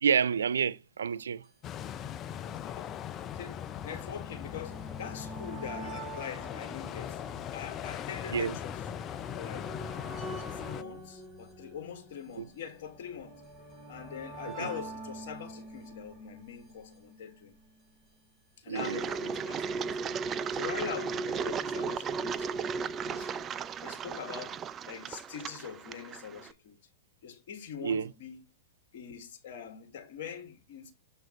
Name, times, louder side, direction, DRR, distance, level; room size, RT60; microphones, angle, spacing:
voice 1, 0.0-1.4 8.3-8.5 12.4-12.5 14.6-14.7 18.7-19.0 27.8-28.1, right 7 dB, 85° right, 0.4 m, -29 dB
sound 1, 1.4-1.5 1.7-1.8 2.7-17.9 18.9-19.0 19.1-19.2, right 2 dB, ahead, 5.0 m, -47 dB
sound 2, 1.6-10.8, left 9 dB, 35° left, 0.5 m, -40 dB
voice 2, 2.6-2.9 3.3-7.2 7.5-8.8 9.3-9.7 10.5-13.4 13.9-17.5 18.6-19.7 20.0-22.5 23.0-23.5 23.8-26.8 27.2-28.4 28.9-30.9, left 8 dB, 60° left, 1.9 m, -43 dB
Engine, 18.7-26.5, right 5 dB, 30° right, 0.5 m, -35 dB
7.5 x 5.3 x 3.1 m
hypercardioid pair, 110°, 0 cm